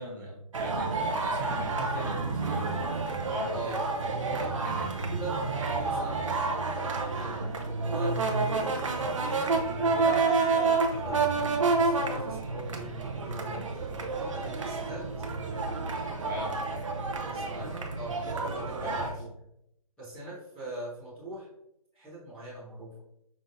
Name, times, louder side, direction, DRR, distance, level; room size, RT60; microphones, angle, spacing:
voice 1, 0.0-2.8 3.2-3.6 4.6-5.0 5.5-5.6 16.2-16.8 18.8-19.1, equal, 30° right, -6 dB, 1.5 m, -39 dB
sound 1, 0.5-19.1, right 3 dB, 55° right, 0.7 m, -29 dB
voice 2, 3.5-3.9 4.3-4.6 5.1-5.4 5.8-8.7 9.0-15.0 17.2-19.3 20.0-21.5 21.9-22.9, right 1 dB, 5° left, -15 dB, 1.2 m, -41 dB
5.4 x 3.5 x 2.7 m, 0.77 s
hypercardioid pair, 175°, 20 cm